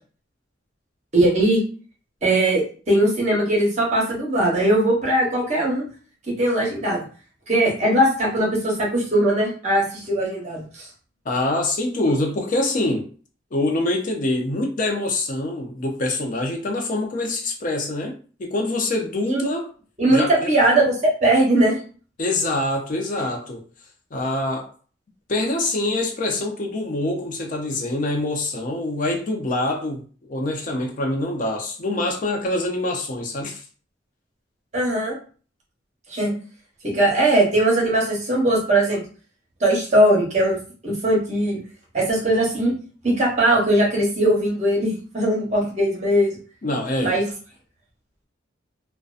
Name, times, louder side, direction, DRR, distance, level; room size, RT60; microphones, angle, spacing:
voice 1, 1.1-1.6 2.2-5.8 6.3-7.1 7.5-10.9 19.3-19.4 20.0-20.9 21.2-21.8 34.7-35.1 36.1-36.3 36.8-39.0 39.6-40.6 40.8-41.6 41.9-42.7 43.0-46.3 47.0-47.2, right 1 dB, 35° right, -3 dB, 0.9 m, -20 dB
voice 2, 11.3-13.1 13.5-18.1 18.4-19.7 20.1-20.5 22.2-23.6 24.1-24.7 25.3-30.0 30.3-33.6 46.6-47.2, left 2 dB, 45° left, 1 dB, 0.5 m, -25 dB
2.6 x 2.2 x 2.4 m, 0.40 s
head